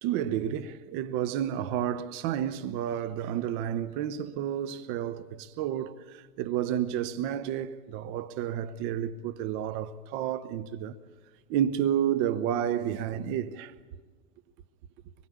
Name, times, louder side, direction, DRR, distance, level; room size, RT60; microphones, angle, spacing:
voice 1, 0.0-10.9 11.5-13.7, right 10 dB, 25° right, 0.7 m, -30 dB
25.5 x 22.0 x 8.5 m
figure-of-eight pair, 100°, 46 cm